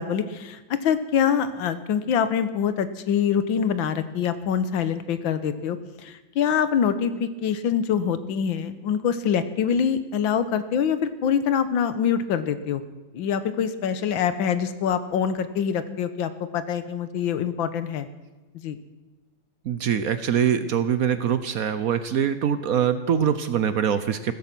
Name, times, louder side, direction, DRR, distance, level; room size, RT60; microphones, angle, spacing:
voice 1, 0.0-12.8 13.1-18.1 18.6-18.8, left 8 dB, 90° left, 12 dB, 1.7 m, -25 dB
voice 2, 19.6-24.3, right 8 dB, 60° right, 12 dB, 1.0 m, -23 dB
16.0 x 14.0 x 6.0 m, 1.2 s
omnidirectional pair, 2.1 m